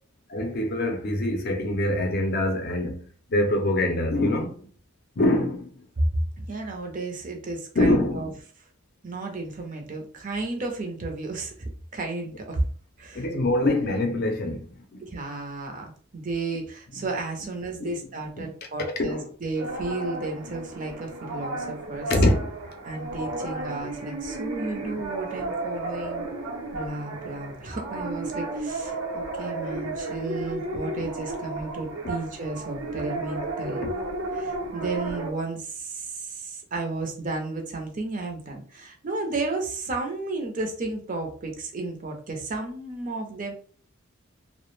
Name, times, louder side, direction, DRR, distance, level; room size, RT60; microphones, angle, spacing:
voice 1, 0.3-4.7 5.2-5.9 7.7-8.4 13.1-15.0 16.9-17.0 17.8-17.9 18.4-18.5 19.0-19.3 22.1-22.5 33.8-33.9, left 1 dB, 50° left, 0.5 m, -25 dB
voice 2, 6.4-8.3 9.0-12.7 13.0-13.2 13.6-13.7 15.0-22.1 22.8-26.3 26.7-33.8 34.3-43.5, right 3 dB, 40° right, 0.5 m, -33 dB
sound 1, 19.5-35.3, right 2 dB, 80° right, 0.7 m, -33 dB
2.3 x 2.0 x 3.1 m
head